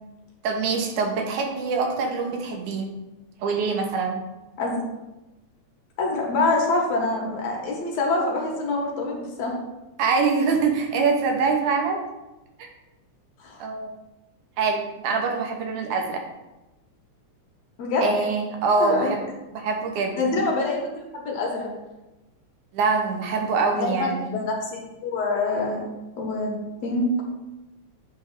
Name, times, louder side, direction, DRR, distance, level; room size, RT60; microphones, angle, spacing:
voice 1, 0.4-2.9 3.4-4.2 10.0-12.0 12.6-12.7 13.6-13.9 14.6-16.2 18.0-19.3 19.5-20.4 22.7-24.4, right 4 dB, 90° right, 2 dB, 2.5 m, -24 dB
voice 2, 6.0-9.6 13.4-13.6 17.8-18.1 18.8-19.1 20.2-21.7 23.7-25.8 26.2-26.5 26.8-27.2, left 2 dB, 65° left, -1 dB, 2.3 m, -25 dB
8.5 x 3.3 x 6.0 m, 1.0 s
omnidirectional pair, 3.4 m